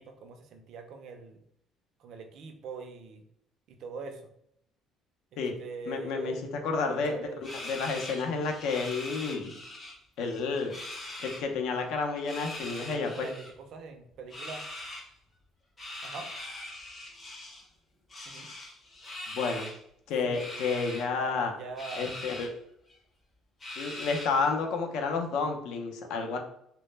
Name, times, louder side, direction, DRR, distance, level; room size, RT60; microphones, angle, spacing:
voice 1, 0.0-1.4 2.0-3.2 3.7-4.2 5.6-6.4 6.9-7.4 12.6-14.6 16.0-16.3 18.3-18.5 20.2-20.8 21.2-22.1, right 4 dB, 55° right, 6 dB, 0.4 m, -43 dB
voice 2, 5.9-6.4 6.6-7.3 7.5-9.5 10.2-10.7 11.2-13.3 19.3-19.7 20.1-21.5 22.0-22.5 23.8-26.4, left 4 dB, 70° left, 4 dB, 0.4 m, -30 dB
sound 1, 7.4-9.9 10.2-11.4 12.2-13.5 14.3-15.0 15.8-17.7 18.1-19.8 20.3-21.0 21.8-22.5 22.9-23.0 23.6-24.5, left 1 dB, 20° left, 0.5 m, -41 dB
2.0 x 2.0 x 3.1 m, 0.73 s
cardioid pair, 160°, 0 cm